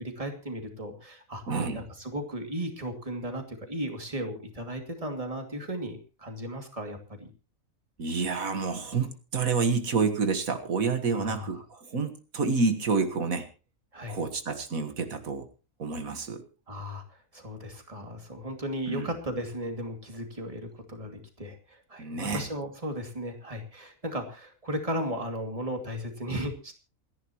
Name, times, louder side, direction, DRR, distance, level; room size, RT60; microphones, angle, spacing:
voice 1, 0.0-1.4 1.7-7.3 11.1-11.6 13.9-14.2 16.7-26.7, equal, 25° right, 4 dB, 2.7 m, -36 dB
voice 2, 1.5-1.8 8.0-13.5 14.1-15.5 15.8-16.4 18.9-19.1 22.0-22.4, right 4 dB, 80° right, 8 dB, 2.0 m, -28 dB
28.5 x 10.5 x 3.1 m, 0.33 s
omnidirectional pair, 1.4 m